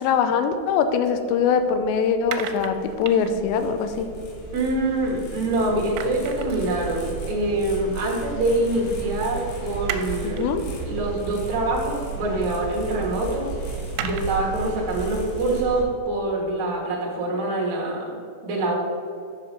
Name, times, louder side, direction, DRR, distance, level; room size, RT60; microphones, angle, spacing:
voice 1, 0.0-4.1 10.2-10.7, left 6 dB, 80° left, 8 dB, 2.7 m, -22 dB
sound 1, 0.8-5.4 5.7-14.6, right 8 dB, 85° right, 2.9 m, -39 dB
sound 2, 2.6-15.8, right 4 dB, 65° left, 3.0 m, -35 dB
voice 2, 4.5-10.4 10.9-18.8, right 2 dB, 60° right, -2 dB, 1.9 m, -25 dB
8.5 x 5.7 x 5.2 m, 2.5 s
omnidirectional pair, 5.3 m